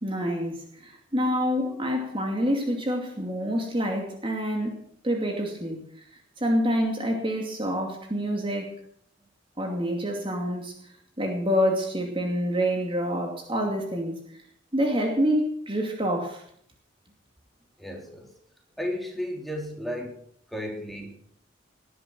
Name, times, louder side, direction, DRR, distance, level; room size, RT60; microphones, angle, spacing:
voice 1, 0.0-5.8 6.4-8.8 9.6-10.7 11.2-14.2 14.7-16.4, equal, 25° right, 2 dB, 2.5 m, -27 dB
voice 2, 17.8-18.3 18.8-20.2 20.5-21.2, left 1 dB, ahead, 1 dB, 3.3 m, -34 dB
19.5 x 11.0 x 6.2 m, 0.64 s
head